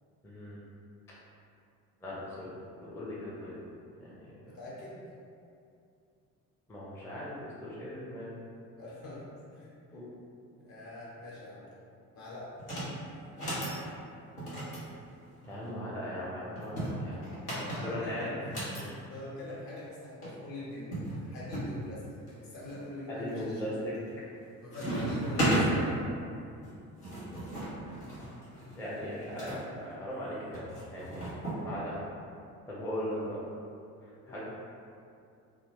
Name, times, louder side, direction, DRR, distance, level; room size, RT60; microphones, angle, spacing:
voice 1, 0.2-0.6 2.0-2.5 2.8-3.6 4.0-4.4 6.7-8.4 9.9-10.0 15.5-17.2 17.8-18.4 23.1-23.9 24.8-25.1 28.8-30.6 30.9-31.2 31.6-32.0 32.7-33.4 34.0-34.4, equal, 5° left, -8 dB, 0.4 m, -38 dB
voice 2, 4.5-5.0 8.8-9.2 9.5-9.8 10.6-11.7 12.1-12.5 17.3-18.4 18.7-23.8 24.6-26.0 34.2-34.4, left 1 dB, 50° left, -7 dB, 1.0 m, -43 dB
sound 1, 12.6-12.9 13.3-13.8 14.4-15.8 16.6-18.8 19.9-20.0 20.2-20.3 20.9-21.7 22.3-22.8 23.3-23.7 24.0-24.4 24.7-25.7 26.6-29.6 30.5-31.6, right 1 dB, 85° left, 0.8 m, -34 dB
2.5 x 2.1 x 3.4 m, 2.5 s
figure-of-eight pair, 50°, 44 cm